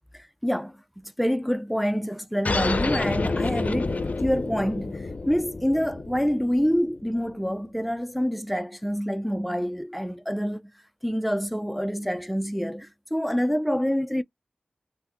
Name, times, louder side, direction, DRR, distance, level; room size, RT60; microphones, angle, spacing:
voice 1, 0.1-10.6 11.0-14.2, equal, ahead, 0.4 m, -27 dB
sound 1, 2.4-7.5, left 3 dB, 60° left, 0.5 m, -29 dB
3.4 x 2.1 x 2.8 m
wide cardioid pair, 50°, 3 cm